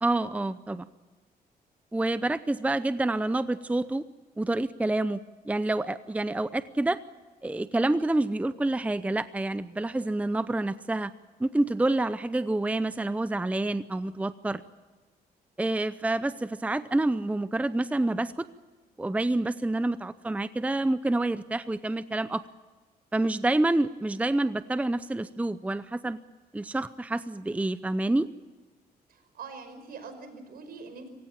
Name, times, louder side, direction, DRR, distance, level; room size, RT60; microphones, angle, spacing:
voice 1, 0.0-0.9 1.9-4.0 4.4-5.2 5.5-7.0 7.4-11.1 11.4-14.6 15.6-18.5 19.0-22.4 23.1-26.2 26.5-28.3, right 2 dB, 10° right, 14 dB, 0.7 m, -28 dB
voice 2, 29.1-31.1, right 4 dB, 70° right, 8 dB, 5.2 m, -44 dB
26.5 x 16.5 x 8.8 m, 1.4 s
cardioid pair, 100°, 16 cm